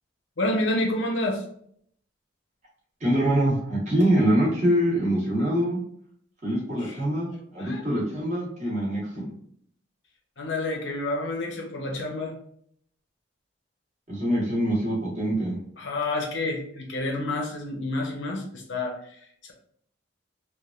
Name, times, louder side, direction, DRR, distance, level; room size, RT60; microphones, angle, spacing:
voice 1, 0.4-1.4 6.8-7.0 7.6-7.8 10.4-12.3 15.8-19.5, left 2 dB, 75° left, 0 dB, 0.8 m, -29 dB
voice 2, 3.0-5.8 6.4-9.3 14.1-15.6, right 1 dB, 35° right, -6 dB, 1.2 m, -24 dB
3.1 x 2.4 x 2.4 m, 0.65 s
head